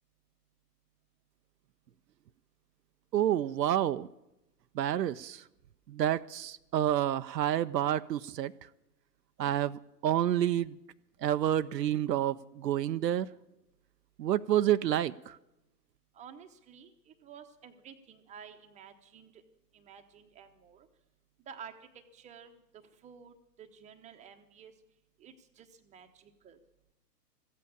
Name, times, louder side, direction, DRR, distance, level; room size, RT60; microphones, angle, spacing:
voice 1, 3.1-4.1 4.8-5.4 5.9-8.5 9.4-10.8 11.2-13.3 14.2-15.4, right 11 dB, 80° right, 12 dB, 0.6 m, -29 dB
voice 2, 16.1-19.4 19.7-20.9 21.5-21.7 22.1-22.6 23.0-24.7 25.2-26.6, right 7 dB, 15° right, 7 dB, 0.9 m, -52 dB
14.5 x 8.5 x 8.6 m, 0.91 s
hypercardioid pair, 125°, 49 cm